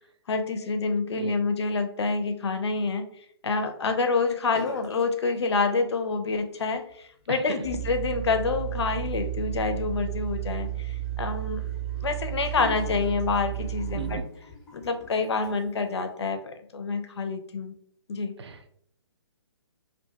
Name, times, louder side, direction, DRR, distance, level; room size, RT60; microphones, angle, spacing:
voice 1, 0.3-3.0 3.4-11.6 12.0-14.2 14.7-17.7 18.1-18.3, left 4 dB, 70° left, 7 dB, 0.5 m, -27 dB
sound 1, 4.5-5.1 5.3-6.0 6.4-15.8, left 4 dB, 10° left, 0.5 m, -47 dB
voice 2, 7.3-7.7 13.9-14.3 18.4-18.7, right 4 dB, 70° right, 7 dB, 0.4 m, -37 dB
sound 2, 7.6-14.2, right 13 dB, 30° right, 0.7 m, -32 dB
2.7 x 2.6 x 2.2 m, 0.66 s
hypercardioid pair, 170°, 14 cm